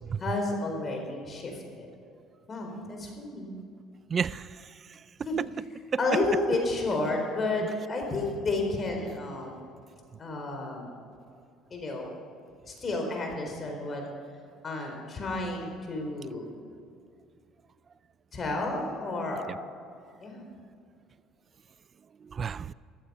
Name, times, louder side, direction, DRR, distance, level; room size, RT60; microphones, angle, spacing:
voice 1, 0.2-1.9 2.5-3.5 5.3-5.4 6.0-9.6 10.2-10.9 11.7-12.1 12.7-14.0 14.6-16.5 18.3-19.4 20.2-20.4, left 2 dB, 35° left, 2 dB, 4.1 m, -31 dB
voice 2, 4.1-5.0 5.4-5.5 5.9-6.0 19.5-19.6 22.2-22.7, right 6 dB, 40° right, 19 dB, 0.4 m, -32 dB
14.5 x 13.5 x 5.6 m, 2.4 s
supercardioid pair, 80°, 0 cm